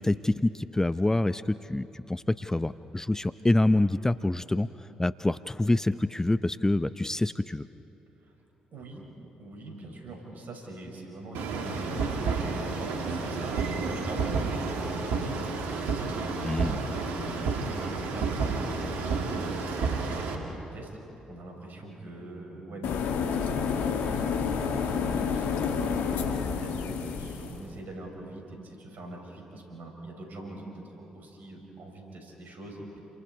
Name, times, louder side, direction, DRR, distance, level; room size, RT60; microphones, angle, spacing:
voice 1, 0.0-7.7 16.4-16.8, left 2 dB, 15° left, 13 dB, 0.6 m, -26 dB
voice 2, 8.7-9.0 9.4-20.9 21.3-23.0 23.4-30.7 31.0-33.0, right 2 dB, 60° right, 0 dB, 6.8 m, -43 dB
sound 1, 11.3-20.3, right 4 dB, 75° right, 2.4 m, -30 dB
sound 2, 22.8-27.6, left 6 dB, 75° left, 1.8 m, -29 dB
30.0 x 27.0 x 4.8 m, 3.0 s
hypercardioid pair, 45°, 3 cm